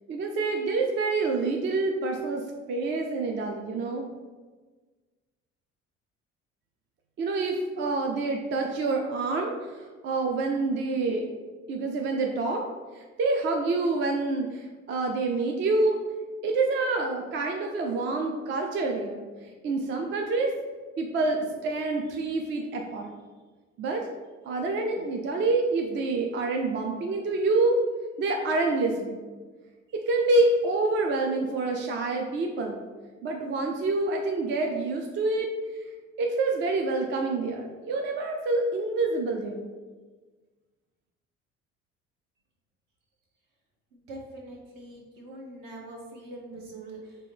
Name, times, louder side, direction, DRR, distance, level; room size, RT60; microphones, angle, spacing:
voice 1, 0.1-4.0 7.2-11.3 11.7-12.6 12.9-16.0 16.4-20.5 21.0-23.2 23.8-24.1 24.4-27.8 28.2-29.3 29.9-32.8 33.2-35.5 36.2-39.7, right 3 dB, 30° right, 2 dB, 0.4 m, -27 dB
voice 2, 43.9-47.2, right 2 dB, 55° right, 0 dB, 1.0 m, -43 dB
4.5 x 2.2 x 3.3 m, 1.4 s
figure-of-eight pair, 55°, 39 cm